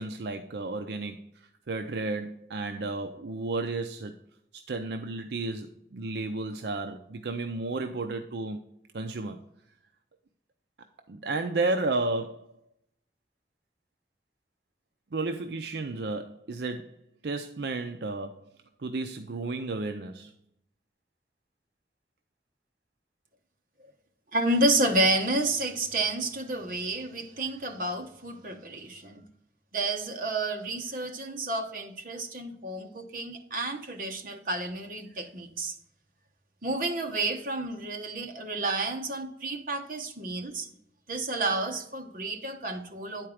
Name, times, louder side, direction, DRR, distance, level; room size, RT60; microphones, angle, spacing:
voice 1, 0.0-4.1 4.5-8.6 8.9-9.4 11.1-12.5 15.1-16.9 17.2-18.4 18.8-20.3, right 3 dB, 70° right, 0.5 m, -32 dB
voice 2, 24.3-29.2 29.7-35.8 36.6-40.7 41.1-43.3, right 2 dB, 50° right, 1.0 m, -30 dB
9.7 x 4.5 x 4.9 m
head